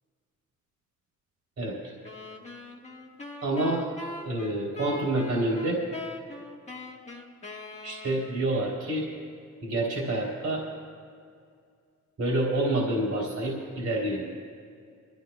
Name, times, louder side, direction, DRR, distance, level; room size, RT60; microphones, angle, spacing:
sound 1, 2.0-8.6, left 3 dB, 20° left, 1.5 m, -42 dB
voice 1, 3.4-3.9 4.2-5.8 7.8-9.1 9.6-10.6 12.2-14.3, right 1 dB, 55° right, -2 dB, 3.2 m, -28 dB
26.0 x 13.5 x 2.2 m, 2.2 s
cardioid pair, 100°, 30 cm